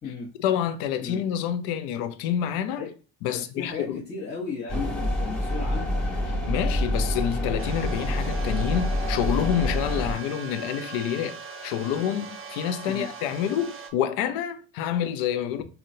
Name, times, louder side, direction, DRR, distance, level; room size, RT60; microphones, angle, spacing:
voice 1, 0.4-2.9 3.2-4.0 6.5-15.6, left 9 dB, 75° left, 0.5 m, -28 dB
voice 2, 3.2-6.0 12.8-13.1 15.6-15.7, left 4 dB, 25° left, 1.1 m, -35 dB
sound 1, 4.7-10.1, left 1 dB, ahead, 1.3 m, -27 dB
sound 2, 7.6-13.9, right 5 dB, 35° right, 0.7 m, -40 dB
3.7 x 2.3 x 2.6 m
hypercardioid pair, 65°, 38 cm